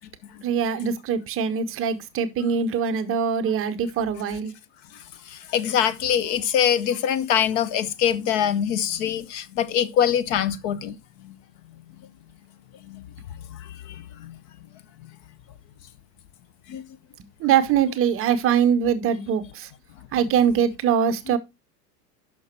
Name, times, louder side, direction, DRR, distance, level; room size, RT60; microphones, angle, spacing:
voice 1, 0.4-4.5 17.4-19.7 20.1-21.4, right 8 dB, 25° right, 0.7 m, -23 dB
voice 2, 5.3-11.0 11.2-11.3 12.9-13.0 13.9-14.3 16.7-16.8, left 9 dB, 45° left, 0.8 m, -24 dB
6.3 x 5.9 x 4.3 m
hypercardioid pair, 115°, 49 cm